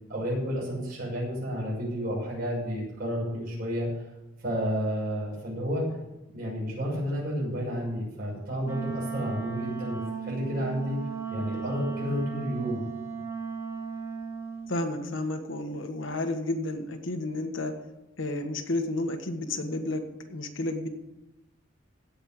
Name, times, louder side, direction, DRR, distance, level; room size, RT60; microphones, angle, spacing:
voice 1, 0.1-3.9 4.4-5.9 6.3-11.0 11.3-12.8, equal, 50° right, -6 dB, 6.3 m, -31 dB
Wind instrument woodwind instrument, 8.6-14.7, right 5 dB, 15° right, 1.5 m, -36 dB
voice 2, 14.7-17.7 18.2-20.9, left 2 dB, 70° left, 5 dB, 1.5 m, -31 dB
16.5 x 5.5 x 8.8 m, 0.99 s
head